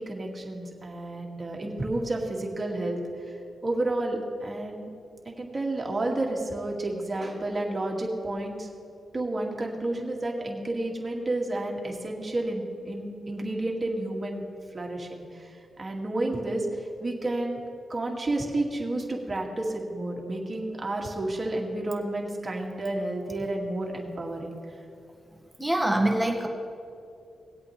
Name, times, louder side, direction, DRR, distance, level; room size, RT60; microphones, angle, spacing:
voice 1, 0.0-3.0 3.6-4.9 5.3-8.7 9.1-14.4 14.7-17.6 17.9-24.6, right 2 dB, 35° right, 0 dB, 2.0 m, -31 dB
voice 2, 25.6-26.5, right 1 dB, 5° right, 1 dB, 1.5 m, -24 dB
19.5 x 8.2 x 3.2 m, 2.5 s
cardioid pair, 65°, 0 cm